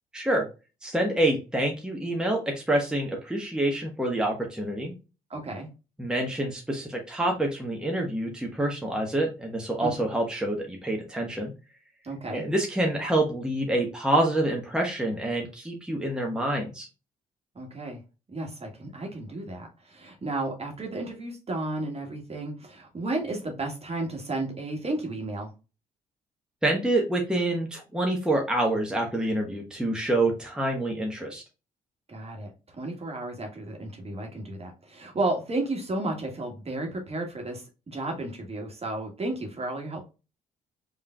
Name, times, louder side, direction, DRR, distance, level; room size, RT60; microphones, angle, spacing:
voice 1, 0.1-0.5 0.8-4.9 6.0-11.5 12.3-16.9 26.6-31.4, right 1 dB, 5° right, 0 dB, 1.2 m, -27 dB
voice 2, 5.3-5.7 9.8-9.9 12.0-12.4 17.5-18.0 18.3-25.5 32.1-40.0, right 2 dB, 30° right, 2 dB, 1.7 m, -33 dB
5.4 x 3.2 x 2.3 m, 0.30 s
hypercardioid pair, 45°, 20 cm